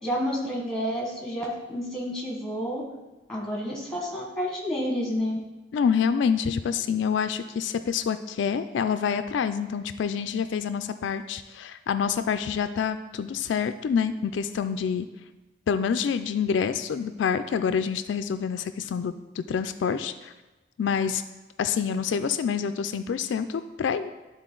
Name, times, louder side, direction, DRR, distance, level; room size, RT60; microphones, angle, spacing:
voice 1, 0.0-2.8 3.3-5.4, equal, 5° left, -2 dB, 1.4 m, -30 dB
voice 2, 5.7-15.1 15.7-20.3 20.8-21.2 21.6-24.1, left 7 dB, 75° left, 10 dB, 0.3 m, -27 dB
11.5 x 4.0 x 3.8 m, 1.1 s
head